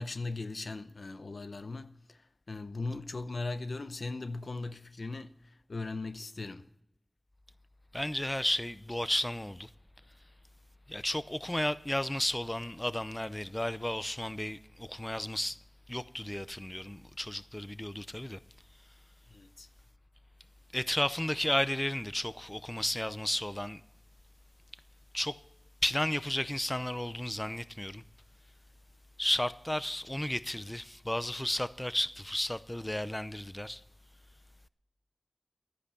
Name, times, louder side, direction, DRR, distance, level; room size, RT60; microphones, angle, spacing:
voice 1, 0.0-6.7 19.3-19.7, left 3 dB, 75° left, 0.7 m, -39 dB
voice 2, 7.9-9.7 10.9-15.6 15.9-18.4 20.7-23.8 25.1-25.4 25.8-28.0 29.2-33.8, left 1 dB, 20° left, 0.6 m, -33 dB
13.0 x 9.8 x 6.9 m
cardioid pair, 40°, 0 cm